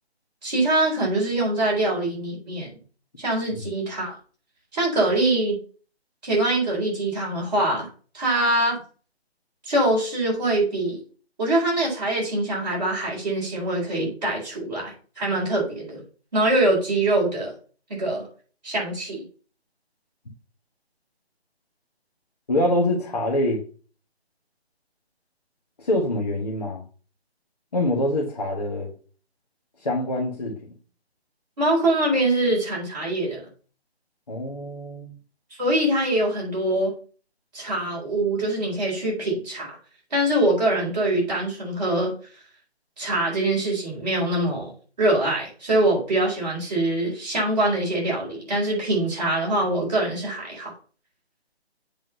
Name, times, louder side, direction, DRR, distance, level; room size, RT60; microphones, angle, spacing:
voice 1, 0.4-2.7 3.2-4.2 4.7-5.6 6.2-7.9 8.1-8.8 9.6-11.0 11.4-16.0 16.3-17.5 17.9-18.3 18.6-19.2 31.6-33.4 35.6-36.9 37.5-39.8 40.1-42.1 43.0-44.7 45.0-50.7, right 1 dB, 40° right, 4.2 m, -23 dB
voice 2, 22.5-23.6 25.8-26.8 27.7-28.9 29.8-30.5 34.3-35.2, left 1 dB, 40° left, 1.3 m, -25 dB
7.9 x 3.7 x 5.5 m
hypercardioid pair, 175°, 32 cm